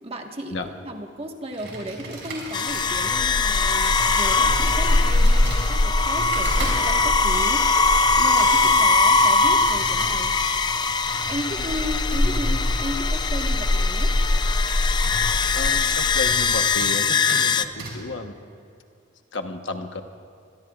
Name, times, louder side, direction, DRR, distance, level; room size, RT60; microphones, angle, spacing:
voice 1, 0.0-7.7 8.2-10.4 11.3-14.1, equal, 30° right, 2 dB, 1.4 m, -34 dB
Computer keyboard, 1.5-16.5 16.8-17.0 17.3-17.4 17.8-17.9, right 2 dB, 60° right, 4.8 m, -37 dB
sound 1, 2.5-17.7, left 3 dB, 20° left, 0.5 m, -20 dB
voice 2, 15.5-18.3 19.3-20.0, left 3 dB, 65° left, 5 dB, 1.1 m, -32 dB
26.5 x 22.0 x 2.4 m, 2.4 s
head